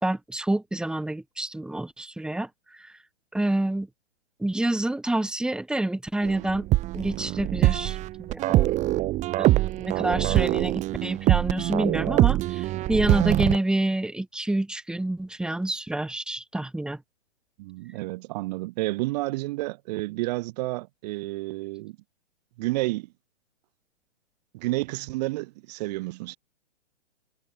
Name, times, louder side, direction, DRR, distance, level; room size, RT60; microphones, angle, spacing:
voice 1, 0.0-2.9 3.3-3.9 4.4-6.7 6.9-8.7 9.4-17.0, right 1 dB, ahead, 4.2 m, -28 dB
sound 1, 6.2-13.6, right 16 dB, 20° right, 2.0 m, -24 dB
voice 2, 17.6-22.0 22.6-23.1 24.5-26.4, right 21 dB, 35° right, 3.4 m, -30 dB
hypercardioid pair, 150°, 35 cm